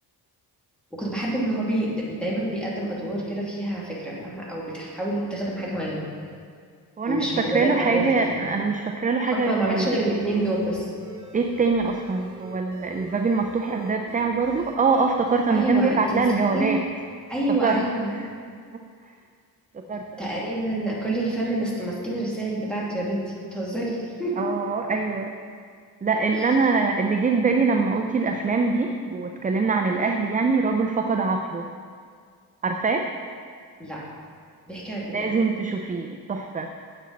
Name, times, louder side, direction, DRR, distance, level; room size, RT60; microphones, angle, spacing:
voice 1, 0.9-6.0 7.1-8.4 9.3-10.9 15.5-16.2 16.5-16.7 17.3-18.1 20.2-24.3 26.3-26.5 33.8-34.0 34.7-35.3, right 1 dB, ahead, -6 dB, 2.3 m, -28 dB
voice 2, 7.0-9.9 11.3-16.8 17.6-17.8 18.1-18.3 19.7-20.3 24.4-25.3 26.0-31.7 32.6-33.1 35.1-36.7, right 4 dB, 20° right, 4 dB, 0.4 m, -23 dB
sound 1, 10.1-16.3, right 5 dB, 45° right, 1.4 m, -44 dB
9.5 x 7.9 x 3.9 m, 2.1 s
wide cardioid pair, 115°, 40 cm